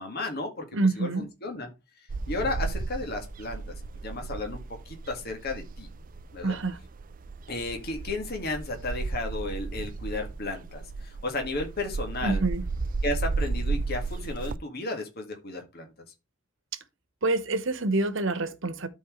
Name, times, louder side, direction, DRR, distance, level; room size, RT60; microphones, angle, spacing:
voice 1, 0.0-0.7 1.0-1.7 2.3-3.6 4.0-4.6 4.9-5.9 6.3-6.6 7.5-12.4 13.0-15.9, left 2 dB, 50° left, 1.9 m, -33 dB
voice 2, 0.7-1.3 6.4-6.8 12.2-12.6 17.2-18.9, right 3 dB, 65° right, 1.1 m, -26 dB
sound 1, 2.1-14.6, right 3 dB, 45° right, 0.4 m, -34 dB
13.0 x 4.6 x 3.2 m
head